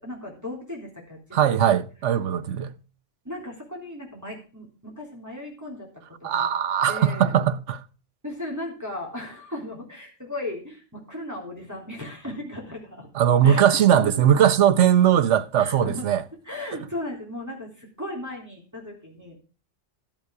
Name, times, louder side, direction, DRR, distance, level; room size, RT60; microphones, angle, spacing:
voice 1, 0.0-1.7 3.2-5.9 6.2-6.5 6.9-7.3 8.2-13.1 13.4-14.3 15.6-16.1 16.4-19.4, left 1 dB, 15° right, 3.6 m, -36 dB
voice 2, 1.3-2.7 6.2-7.8 13.1-16.2, right 9 dB, 80° right, 1.2 m, -20 dB
12.5 x 8.1 x 4.7 m
omnidirectional pair, 1.2 m